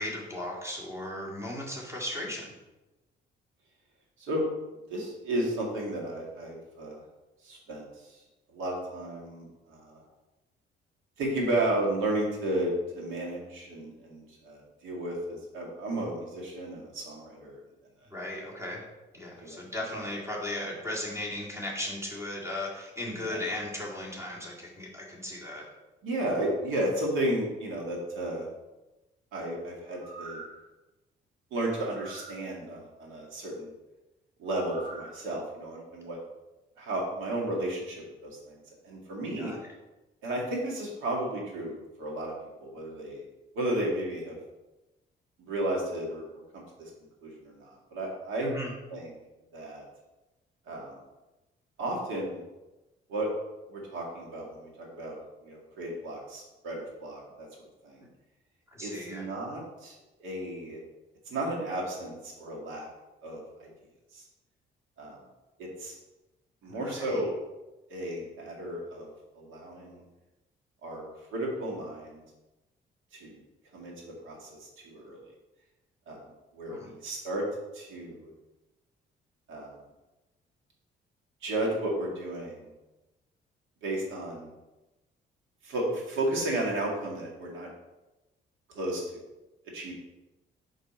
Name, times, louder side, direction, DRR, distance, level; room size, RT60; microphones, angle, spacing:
voice 1, 0.0-2.6 18.1-18.8 19.1-25.7 39.4-39.7 48.4-48.7 58.0-58.1 58.7-59.3 66.7-67.2 76.7-76.9, left 1 dB, 15° right, -3 dB, 2.0 m, -36 dB
voice 2, 4.9-7.0 7.4-8.2 8.5-10.0 11.2-17.6 19.4-19.6 23.2-23.4 26.0-28.5 29.3-30.4 31.5-33.7 34.4-36.2 36.8-39.5 40.2-42.3 42.6-43.2 43.5-44.4 45.4-46.2 46.5-46.9 47.2-48.5 48.9-49.1 49.5-49.8 50.7-51.0 51.8-52.4 53.1-53.3 53.7-57.5 57.8-58.0 58.8-60.8 61.3-62.9 63.2-63.7 64.1-64.2 65.0-65.2 65.6-65.9 66.6-67.3 67.9-69.1 69.3-70.0 70.8-71.0 71.3-72.2 73.1-73.4 73.7-75.3 76.1-76.2 76.5-77.4 77.7-78.3 79.5-79.8 81.4-82.7 83.8-84.5 85.6-87.7 88.7-89.0 89.7-89.9, right 1 dB, 85° right, -2 dB, 1.9 m, -33 dB
sound 1, 29.9-30.6 31.7-32.3 34.4-35.1 35.6-35.7, right 2 dB, 40° right, 1.5 m, -45 dB
5.3 x 5.0 x 4.3 m, 1.0 s
cardioid pair, 90°, 20 cm